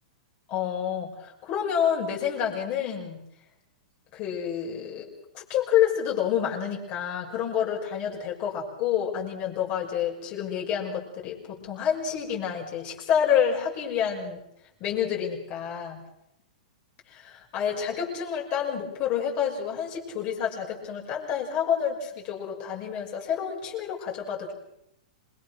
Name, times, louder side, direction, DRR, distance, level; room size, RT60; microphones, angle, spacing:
voice 1, 0.5-3.2 4.1-5.1 5.3-14.4 14.8-16.0 17.1-24.5, left 8 dB, 35° left, -1 dB, 6.0 m, -28 dB
27.0 x 22.0 x 6.3 m, 0.79 s
hypercardioid pair, 145°, 4 cm